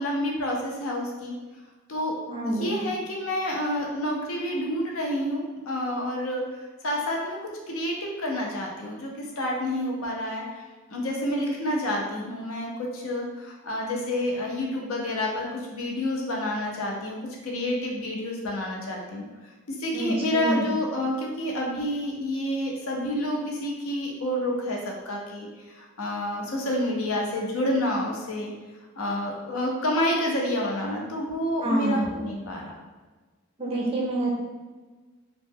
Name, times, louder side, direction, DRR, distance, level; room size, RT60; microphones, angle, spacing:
voice 1, 0.0-1.3 1.9-2.1 2.4-6.4 6.8-7.4 7.7-10.6 10.9-17.2 17.4-19.3 19.7-28.5 29.0-32.7, left 1 dB, 70° left, -1 dB, 0.6 m, -29 dB
voice 2, 2.3-2.7 19.9-20.6 31.6-32.0 33.6-34.3, right 1 dB, 25° right, -2 dB, 0.5 m, -27 dB
3.0 x 2.0 x 3.5 m, 1.3 s
head